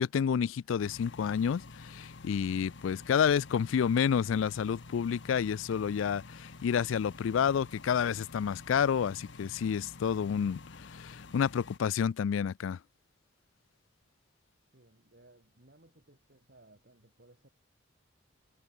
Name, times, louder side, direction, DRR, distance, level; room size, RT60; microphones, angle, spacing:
voice 1, 0.0-12.8, left 7 dB, 90° left, 0.4 m, -29 dB
sound 1, 0.8-11.8, left 3 dB, 70° left, 1.0 m, -49 dB
voice 2, 14.7-17.5, right 2 dB, 55° right, 2.2 m, -61 dB
head